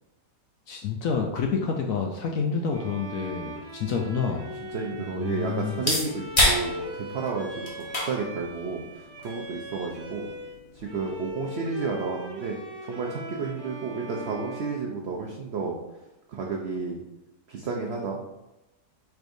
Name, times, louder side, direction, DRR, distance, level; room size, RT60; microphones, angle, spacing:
voice 1, 0.7-4.5 5.0-5.9, left 5 dB, 70° left, 1 dB, 0.8 m, -28 dB
Bowed string instrument, 2.7-10.6 10.8-15.6, equal, 45° right, 1.2 m, -40 dB
sound 1, 3.9-11.3, left 1 dB, 30° left, 0.7 m, -31 dB
voice 2, 4.7-10.3 10.7-12.6 12.8-15.8 16.3-17.0 17.5-18.2, right 4 dB, 80° right, 0 dB, 0.5 m, -32 dB
4.6 x 4.4 x 2.6 m, 0.96 s
omnidirectional pair, 1.8 m